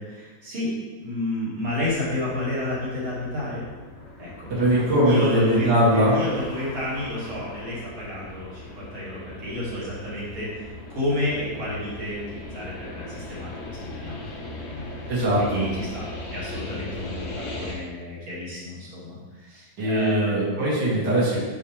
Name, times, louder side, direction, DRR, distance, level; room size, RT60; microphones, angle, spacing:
voice 1, 0.0-3.6 4.2-4.3 4.8-14.9 15.4-20.4, left 1 dB, 45° right, -8 dB, 1.8 m, -31 dB
sound 1, 1.6-17.7, left 2 dB, 80° left, 1.8 m, -39 dB
voice 2, 4.5-6.2 15.1-15.6 19.8-21.4, equal, 85° right, -8 dB, 0.9 m, -21 dB
7.1 x 6.8 x 3.3 m, 1.3 s
omnidirectional pair, 5.6 m